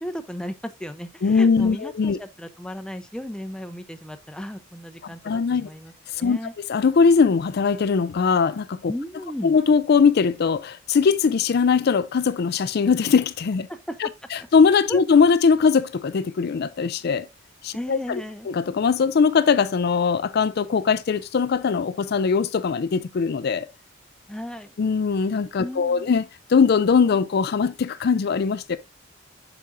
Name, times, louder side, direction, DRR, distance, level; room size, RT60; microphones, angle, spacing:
voice 1, 0.0-6.5 8.9-9.6 13.7-14.0 14.9-15.0 17.7-18.5 24.3-24.7 25.6-26.1, equal, 5° left, 0.6 m, -35 dB
voice 2, 1.2-2.2 5.2-5.7 6.2-6.4 6.7-8.9 9.4-13.7 14.0-17.3 17.6-23.7 24.8-26.2 26.5-28.8, left 5 dB, 55° left, 0.4 m, -20 dB
8.4 x 5.9 x 2.5 m
head